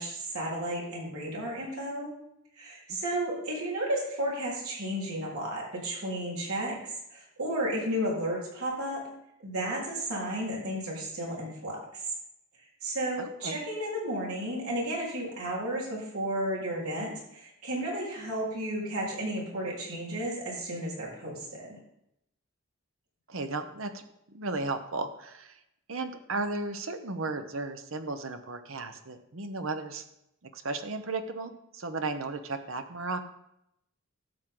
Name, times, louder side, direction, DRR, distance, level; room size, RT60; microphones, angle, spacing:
voice 1, 0.0-2.1 2.6-6.8 7.1-9.0 9.4-12.0 12.8-21.8, right 1 dB, 90° right, -4 dB, 3.9 m, -33 dB
voice 2, 13.2-13.6 23.3-24.0 24.3-25.6 25.9-30.0 30.5-33.2, right 3 dB, 65° right, 8 dB, 0.9 m, -35 dB
12.5 x 7.6 x 3.9 m, 0.80 s
head